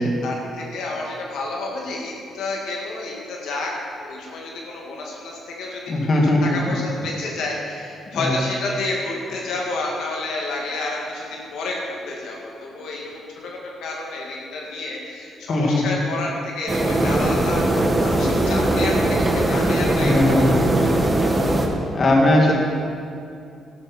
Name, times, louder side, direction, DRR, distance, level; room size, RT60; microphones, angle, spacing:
voice 1, 0.0-3.7 4.0-5.8 6.4-19.0 19.3-20.5 21.2-21.3 22.5-22.6, left 2 dB, 80° left, -2 dB, 2.1 m, -30 dB
voice 2, 5.9-6.8 8.1-8.4 15.5-16.0 19.9-20.9 21.2-21.3 21.9-22.5, left 1 dB, 45° left, -1 dB, 2.3 m, -19 dB
sound 1, 16.7-21.7, right 1 dB, 25° right, 1.6 m, -20 dB
12.0 x 12.0 x 4.4 m, 2.4 s
cardioid pair, 90°, 0 cm